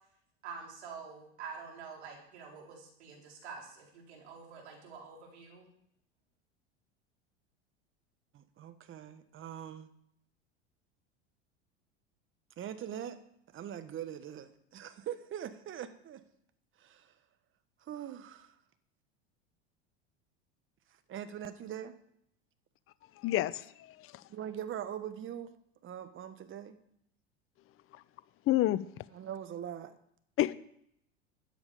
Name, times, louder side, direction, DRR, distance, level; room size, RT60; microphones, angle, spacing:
voice 1, 0.4-5.7, right 5 dB, 75° right, -1 dB, 4.2 m, -47 dB
voice 2, 8.3-9.9 12.6-13.2 13.5-16.2 16.8-17.1 17.8-18.5 20.9-21.9 24.3-25.5 25.8-26.8 29.1-30.0, right 10 dB, 35° right, 10 dB, 1.4 m, -42 dB
voice 3, 23.2-24.2 27.9-28.0 28.5-29.0 30.4-30.5, left 14 dB, 40° left, 17 dB, 0.7 m, -30 dB
13.5 x 9.2 x 5.1 m, 0.72 s
hypercardioid pair, 85°, 33 cm